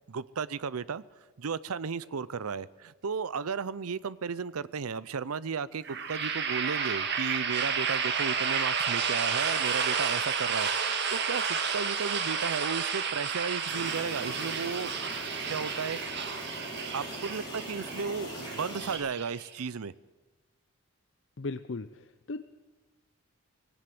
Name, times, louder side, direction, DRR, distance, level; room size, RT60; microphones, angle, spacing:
voice 1, 0.1-1.0 1.4-14.9 15.5-16.3 16.9-19.9, right 5 dB, 80° right, 18 dB, 0.6 m, -34 dB
sound 1, 5.8-19.7, right 6 dB, 50° right, 1.9 m, -31 dB
sound 2, 13.7-19.0, equal, 20° left, 7.4 m, -41 dB
voice 2, 21.4-22.4, left 3 dB, 55° left, 11 dB, 0.6 m, -37 dB
19.5 x 17.0 x 7.8 m, 1.3 s
head